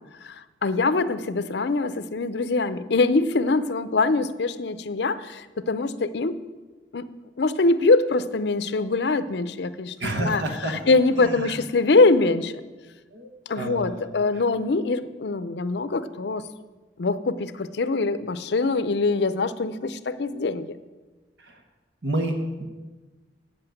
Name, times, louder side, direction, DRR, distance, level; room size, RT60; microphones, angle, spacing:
voice 1, 0.2-6.4 6.9-7.1 7.4-12.5 13.5-16.5 17.0-20.8, left 3 dB, 65° left, 13 dB, 0.5 m, -23 dB
voice 2, 10.0-10.8 11.2-11.5 13.1-13.3 13.6-14.1 21.4-21.6 22.0-22.6, right 1 dB, 70° right, 4 dB, 1.2 m, -29 dB
8.5 x 7.8 x 9.0 m, 1.3 s
head